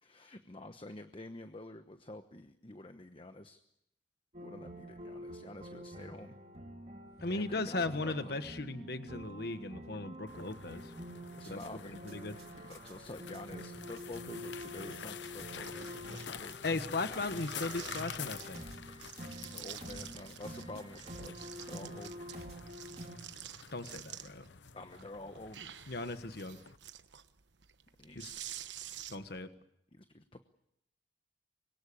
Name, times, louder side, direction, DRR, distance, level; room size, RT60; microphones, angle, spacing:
voice 1, 0.0-3.6 4.4-6.4 7.3-8.4 11.3-12.0 12.6-16.6 19.4-22.1 24.7-25.6 28.0-28.4 29.9-30.4, left 2 dB, 30° left, 8 dB, 1.1 m, -48 dB
sound 1, 4.3-23.2, equal, 35° right, 4.0 m, -48 dB
voice 2, 7.2-10.9 11.5-12.4 16.6-18.6 23.7-24.4 25.9-26.6 28.1-28.3 29.1-29.5, left 2 dB, 60° left, 9 dB, 1.4 m, -37 dB
sound 2, 10.3-26.8, left 7 dB, 80° left, 0.9 m, -48 dB
sound 3, 15.6-16.7 17.3-18.6 19.0-20.6 20.9-24.5 24.9-29.4, right 11 dB, 80° right, 1.2 m, -49 dB
25.5 x 22.5 x 8.6 m, 0.81 s
head